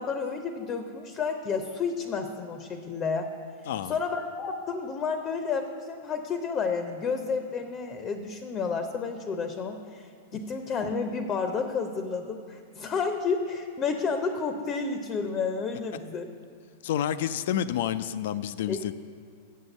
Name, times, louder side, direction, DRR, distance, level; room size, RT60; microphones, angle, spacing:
voice 1, 0.0-3.3 3.8-16.3 18.7-18.9, left 5 dB, 30° left, 7 dB, 0.7 m, -31 dB
voice 2, 16.8-18.9, left 10 dB, 60° left, 14 dB, 0.3 m, -29 dB
7.5 x 6.5 x 7.1 m, 2.3 s
figure-of-eight pair, 95°, 0 cm